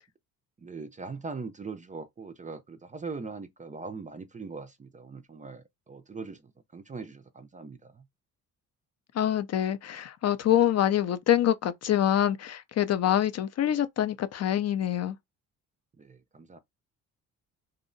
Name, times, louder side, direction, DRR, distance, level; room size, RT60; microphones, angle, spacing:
voice 1, 0.6-6.4 6.7-8.0 16.0-16.6, right 4 dB, 20° right, 0.4 m, -41 dB
voice 2, 9.1-15.2, left 11 dB, 45° left, 0.4 m, -25 dB
2.7 x 2.1 x 2.5 m
supercardioid pair, 65°, 39 cm